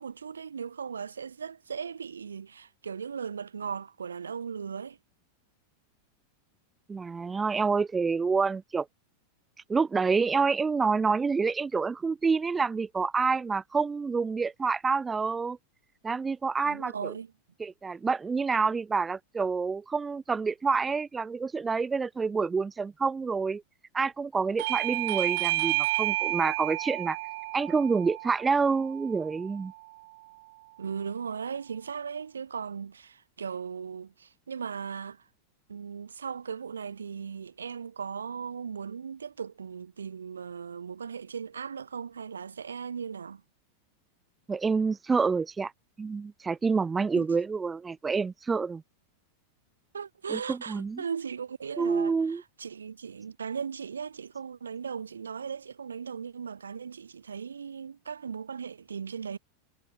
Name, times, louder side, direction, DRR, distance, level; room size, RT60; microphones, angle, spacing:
voice 1, 0.0-5.0 16.6-17.3 30.8-35.2 35.7-43.4 47.2-47.3 49.9-59.4, right 6 dB, 70° right, 4.5 m, -37 dB
voice 2, 6.9-8.9 9.7-15.6 16.0-17.1 17.6-23.6 23.9-27.2 27.5-29.7 44.5-45.7 46.0-48.8 50.3-51.0 51.8-52.4, right 5 dB, 15° right, 1.7 m, -28 dB
Bell / Doorbell, 24.6-29.8, right 20 dB, 50° right, 7.1 m, -31 dB
figure-of-eight pair, 90°, 0 cm